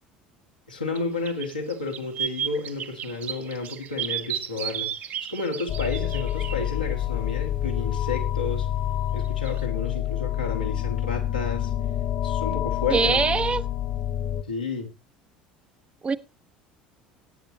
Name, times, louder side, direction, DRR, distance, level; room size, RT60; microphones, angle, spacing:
voice 1, 0.7-8.7 9.1-11.7 12.2-13.2 14.5-14.9, left 3 dB, 85° left, 2.1 m, -31 dB
sound 1, 1.0-1.1 1.3-6.6 9.5-9.6, right 10 dB, 45° right, 1.1 m, -33 dB
sound 2, 5.7-14.4, left 11 dB, 50° left, 1.5 m, -27 dB
voice 2, 12.9-13.6 16.0-16.2, right 5 dB, 25° right, 0.8 m, -22 dB
21.0 x 9.2 x 2.8 m
figure-of-eight pair, 65°, 4 cm